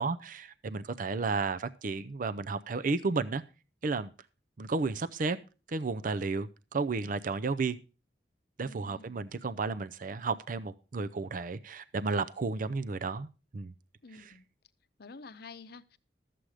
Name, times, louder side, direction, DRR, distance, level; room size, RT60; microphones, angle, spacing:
voice 1, 0.0-3.4 3.8-4.1 4.6-5.4 5.7-7.8 8.6-13.3 13.5-13.7 14.1-14.3, right 4 dB, 50° right, 12 dB, 0.5 m, -32 dB
voice 2, 8.6-9.2 14.0-14.5 15.0-16.0, left 4 dB, 60° left, 12 dB, 0.7 m, -49 dB
13.0 x 7.6 x 4.9 m, 0.32 s
head